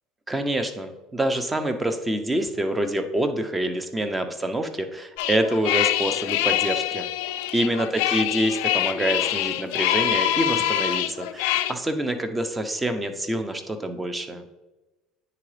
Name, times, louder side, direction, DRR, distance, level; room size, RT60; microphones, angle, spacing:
voice 1, 0.3-7.1 7.5-14.4, right 1 dB, 15° right, 8 dB, 0.7 m, -26 dB
sound 1, 5.2-11.7, left 13 dB, 80° left, 0.3 m, -25 dB
9.6 x 3.9 x 3.2 m, 1.1 s
supercardioid pair, 95°, 0 cm